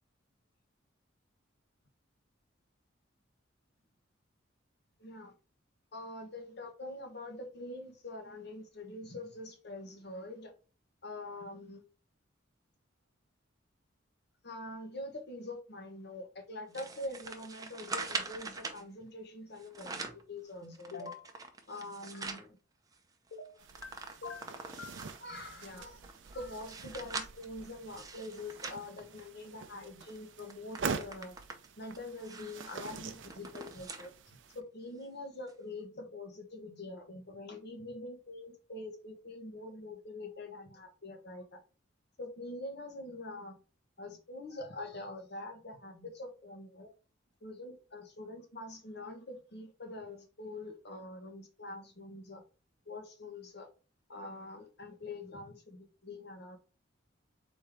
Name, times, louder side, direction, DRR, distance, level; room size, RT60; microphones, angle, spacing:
voice 1, 5.0-5.3 5.9-10.5 11.0-11.8 14.4-21.1 21.7-22.6 23.5-23.6 24.5-24.8 25.2-26.0 26.3-31.4 31.8-41.6 42.2-43.6 44.0-46.9 47.4-52.4 52.8-53.7 54.1-56.6, left 2 dB, 55° left, 4 dB, 1.2 m, -45 dB
sound 1, 16.7-18.8 19.6-20.3 20.7-22.5 22.9-23.0 23.3-25.3 25.9-29.6 30.0-30.2 30.5-34.1 34.5-34.6 35.5-35.6, right 4 dB, 20° right, 0.6 m, -43 dB
sound 2, 20.9-21.3 23.3-23.9 24.2-25.0, left 5 dB, 70° left, 0.7 m, -44 dB
sound 3, 23.6-34.6, right 5 dB, 65° right, 0.6 m, -45 dB
4.2 x 3.7 x 3.4 m, 0.36 s
head